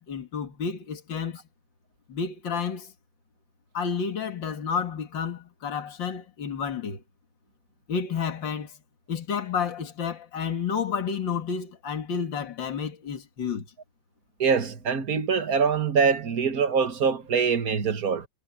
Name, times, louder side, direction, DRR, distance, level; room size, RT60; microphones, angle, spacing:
voice 1, 0.0-1.4 2.1-2.9 3.7-7.0 7.9-8.8 9.1-13.7, left 6 dB, 70° left, 2.7 m, -30 dB
voice 2, 14.4-18.3, right 6 dB, 50° right, 2.0 m, -24 dB
omnidirectional pair, 2.1 m